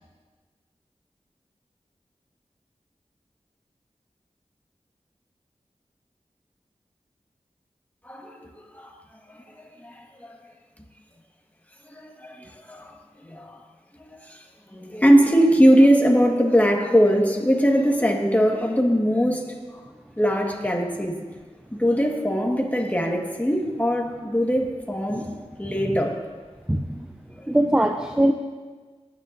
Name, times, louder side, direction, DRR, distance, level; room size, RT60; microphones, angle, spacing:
voice 1, 8.0-8.9 9.3-9.4 9.8-10.4 11.8-13.6 13.9-14.4 14.7-19.8 20.2-21.2 21.7-25.3 25.6-26.2 27.4-27.5, equal, 15° left, 1 dB, 1.5 m, -21 dB
voice 2, 26.7-27.0 27.5-28.3, right 1 dB, 10° right, 4 dB, 0.6 m, -21 dB
19.0 x 9.7 x 2.6 m, 1.4 s
wide cardioid pair, 70°, 12 cm